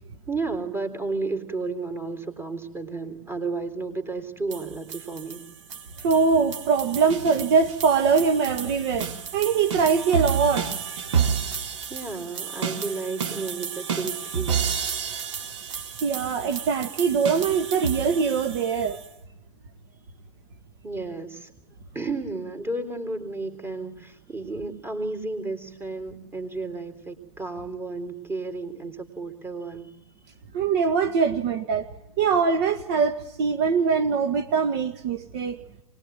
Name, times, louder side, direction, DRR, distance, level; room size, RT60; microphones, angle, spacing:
voice 1, 0.3-5.4 11.9-14.8 20.8-21.5 21.9-29.9, right 3 dB, 15° right, 7 dB, 3.7 m, -32 dB
sound 1, 4.5-19.1, right 7 dB, 65° right, 3.7 m, -31 dB
voice 2, 6.0-10.7 16.0-19.0 30.5-31.9 32.2-35.6, right 5 dB, 45° right, 6 dB, 1.9 m, -22 dB
25.0 x 21.0 x 9.1 m, 0.84 s
hypercardioid pair, 130°, 17 cm